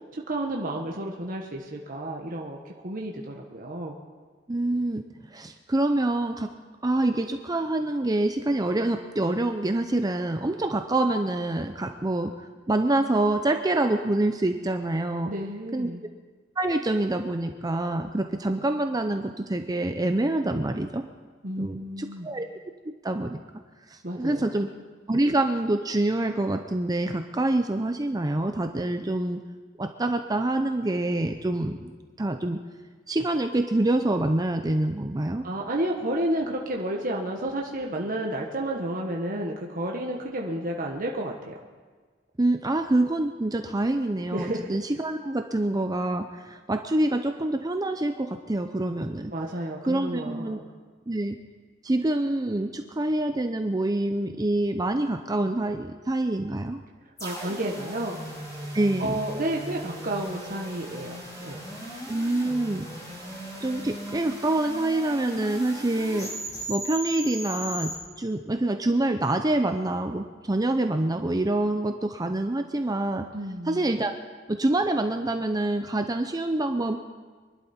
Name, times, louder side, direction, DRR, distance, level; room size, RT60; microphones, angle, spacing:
voice 1, 0.1-3.9 15.3-16.0 21.4-22.3 24.0-24.5 35.4-41.5 44.3-44.8 49.3-50.6 57.2-58.2 58.6-58.7 59.0-61.6 73.3-73.8, right 1 dB, 45° right, -1 dB, 1.3 m, -31 dB
voice 2, 4.5-5.0 5.3-6.5 6.8-12.3 12.7-15.3 15.7-15.9 16.6-21.0 21.6-22.4 23.0-23.4 23.9-24.7 25.1-29.4 29.8-32.6 33.1-35.4 42.4-49.3 49.9-50.6 51.1-51.4 51.8-56.8 58.7-59.2 62.1-62.9 63.6-66.3 66.7-67.9 68.2-73.3 73.7-74.1 74.5-77.0, right 2 dB, 20° right, 6 dB, 0.6 m, -26 dB
sound 1, 57.2-68.0, equal, 20° left, 5.3 m, -38 dB
24.0 x 11.5 x 4.4 m, 1.4 s
head